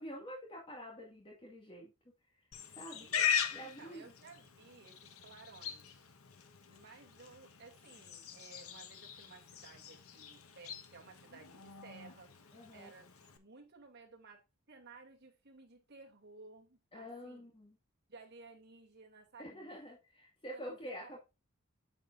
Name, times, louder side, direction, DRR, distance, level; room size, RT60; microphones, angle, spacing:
voice 1, 0.0-1.9 2.7-3.1 3.5-4.1 12.5-12.9 16.9-17.8 19.4-21.2, equal, 25° left, 2.0 m, -47 dB
Livestock farm animals working animals, 2.5-13.4, left 8 dB, 85° left, 1.2 m, -41 dB
voice 2, 3.6-6.1 6.7-14.4 14.7-17.5 18.1-19.7 20.5-21.1, right 3 dB, 50° right, 2.6 m, -57 dB
9.1 x 7.5 x 2.6 m
head